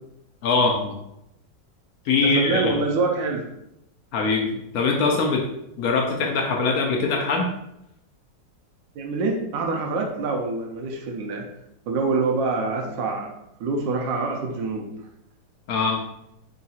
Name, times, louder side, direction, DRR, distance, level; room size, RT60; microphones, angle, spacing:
voice 1, 0.4-1.0 2.1-2.7 4.1-5.4 5.8-7.5 15.7-16.0, left 4 dB, 70° left, 2 dB, 0.8 m, -22 dB
voice 2, 2.2-3.5 9.0-11.4 11.9-13.3 13.6-14.9, right 3 dB, 85° right, 1 dB, 1.3 m, -25 dB
3.6 x 2.4 x 4.1 m, 0.81 s
omnidirectional pair, 2.0 m